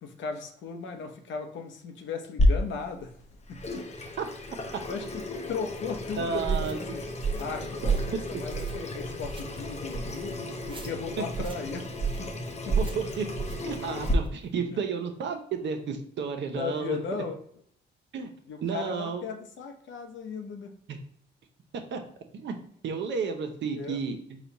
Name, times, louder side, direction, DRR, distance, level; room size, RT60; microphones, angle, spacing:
voice 1, 0.0-3.1 3.5-3.8 4.8-5.1 5.5-7.0 7.4-10.4 10.7-11.8 12.2-12.3 12.6-12.8 16.5-17.4 18.5-20.7 23.7-24.0, left 5 dB, 70° left, 5 dB, 0.8 m, -36 dB
Water tap faucet / Sink (filling or washing), 2.4-14.1, left 1 dB, 35° left, 0.7 m, -32 dB
voice 2, 6.2-6.8 12.8-13.3 13.6-17.0 18.1-18.3 18.6-19.2 20.9-21.0 21.9-22.0 22.4-22.6 22.8-24.4, right 5 dB, 65° right, 5 dB, 0.8 m, -32 dB
sound 1, 6.4-6.7 7.2-7.5 7.8-8.1 8.5-8.9 9.2-9.4 9.9-10.2 10.6-10.9 11.3-11.6 12.0-12.3 12.7-13.0 13.4-13.6 14.0-14.3, right 5 dB, 25° right, 0.6 m, -30 dB
4.1 x 2.3 x 4.1 m, 0.66 s
cardioid pair, 90°, 20 cm